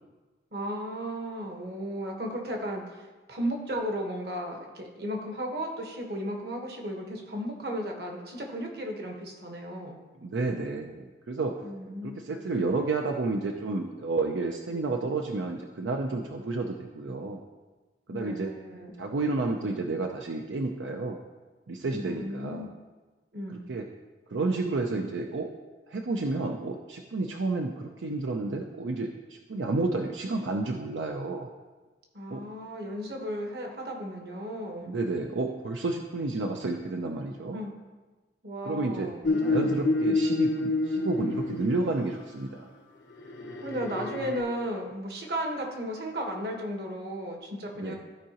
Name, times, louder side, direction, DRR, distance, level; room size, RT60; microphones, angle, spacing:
voice 1, 0.5-10.0 11.6-12.2 18.1-18.9 21.9-22.7 23.3-23.6 32.1-34.9 37.5-37.7 38.4-39.7 43.6-48.0, equal, 60° right, 2 dB, 1.2 m, -35 dB
voice 2, 10.2-11.6 12.0-17.4 18.1-18.5 19.0-21.2 21.7-22.7 23.5-23.9 24.3-25.5 25.9-31.5 32.3-32.4 34.9-37.6 38.6-39.1 39.4-42.7 47.8-48.0, right 3 dB, 85° right, 3 dB, 0.5 m, -31 dB
sound 1, 39.2-42.2 43.2-44.4, left 2 dB, 85° left, 1.0 m, -28 dB
14.0 x 4.7 x 2.9 m, 1.3 s
head